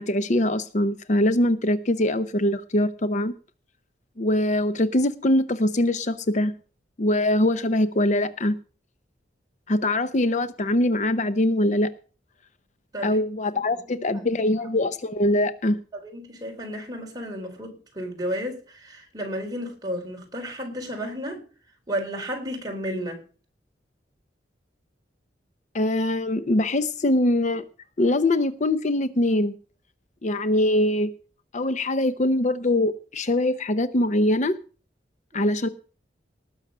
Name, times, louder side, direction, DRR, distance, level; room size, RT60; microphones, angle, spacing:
voice 1, 0.0-3.3 4.2-6.5 7.0-8.6 9.7-11.9 13.0-15.8 25.7-27.6 28.0-29.5 30.2-31.1 31.5-34.6 35.3-35.7, left 1 dB, 40° left, 0.7 m, -23 dB
voice 2, 13.9-14.3 15.9-21.4 21.9-23.2 35.3-35.5, equal, 20° right, 4.2 m, -33 dB
19.0 x 6.4 x 6.7 m
head